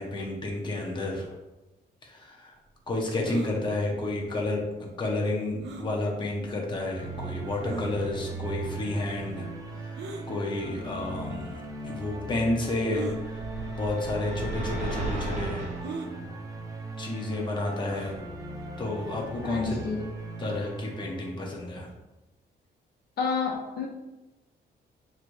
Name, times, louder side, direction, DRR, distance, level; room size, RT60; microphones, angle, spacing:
voice 1, 0.0-1.3 2.0-2.6 2.9-13.4 13.7-15.6 15.9-16.2 17.0-18.2 18.8-19.8 20.4-21.9, left 2 dB, 25° left, -1 dB, 0.8 m, -31 dB
sound 1, 3.2-3.5 5.6-5.9 6.7-6.8 7.7-7.9 9.9-10.3 11.3-11.4 12.9-13.2 14.1-14.3 14.5-14.6 15.8-16.1 17.8-18.2, right 5 dB, 75° right, 0.6 m, -37 dB
sound 2, 6.9-21.4, right 2 dB, 20° right, 0.6 m, -39 dB
sound 3, 12.9-15.8, right 2 dB, 40° right, 1.1 m, -35 dB
voice 2, 19.4-20.1 23.2-23.9, left 5 dB, 60° left, 0 dB, 0.7 m, -29 dB
6.0 x 3.1 x 2.6 m, 1.1 s
cardioid pair, 160°, 18 cm